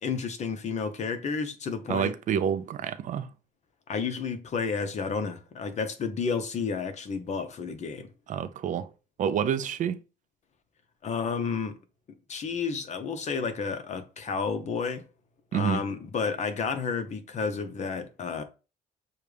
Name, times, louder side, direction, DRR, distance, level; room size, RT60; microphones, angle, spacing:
voice 1, 0.0-2.1 3.9-8.1 11.0-11.8 12.3-15.0 15.5-18.4, left 5 dB, 45° left, 0.9 m, -31 dB
voice 2, 1.9-3.3 8.3-8.9 9.2-10.0 15.5-15.8, right 8 dB, 50° right, 0.4 m, -28 dB
6.7 x 2.3 x 3.3 m
cardioid pair, 110°, 17 cm